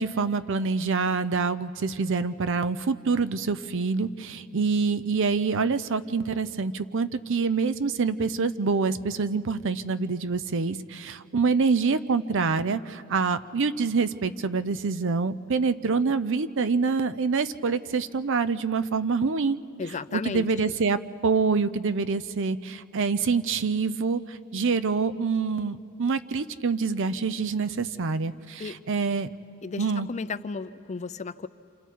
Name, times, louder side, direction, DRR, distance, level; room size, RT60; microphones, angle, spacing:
voice 1, 0.0-19.6 20.1-29.3 29.8-30.1, right 4 dB, 60° right, 14 dB, 0.6 m, -26 dB
voice 2, 19.8-20.5 28.6-28.8 29.6-31.5, left 4 dB, 30° left, 14 dB, 0.5 m, -34 dB
27.5 x 27.5 x 4.6 m, 2.6 s
head